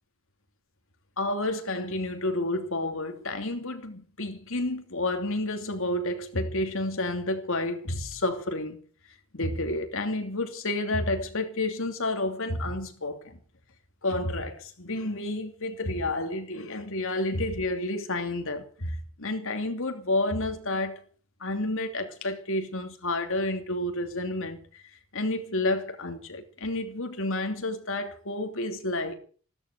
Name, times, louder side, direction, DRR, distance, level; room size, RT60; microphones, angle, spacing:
voice 1, 1.2-8.8 9.3-13.4 14.0-21.0 21.4-24.8 25.1-29.1, left 2 dB, 60° left, 2.9 m, -30 dB
15.0 x 13.0 x 6.8 m
head